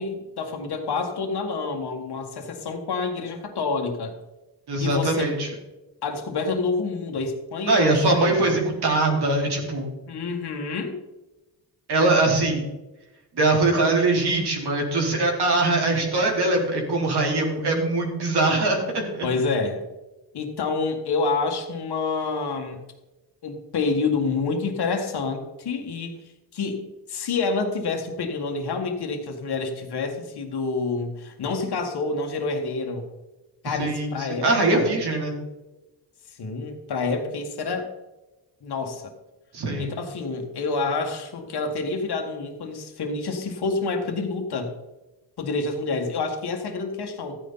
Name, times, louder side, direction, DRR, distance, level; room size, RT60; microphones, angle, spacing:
voice 1, 0.0-4.2 4.8-5.4 6.0-8.5 10.1-11.0 19.2-19.8 20.3-22.8 23.4-26.2 26.5-33.1 33.6-34.9 36.4-37.9 38.6-39.1 39.8-44.7 45.4-47.4, left 4 dB, 60° left, 3 dB, 2.0 m, -28 dB
voice 2, 4.7-5.5 7.7-9.9 11.9-12.7 13.3-19.3 33.6-35.4 39.5-39.9, right 2 dB, 60° right, 0 dB, 3.6 m, -22 dB
14.0 x 9.8 x 4.0 m, 1.1 s
cardioid pair, 90°, 43 cm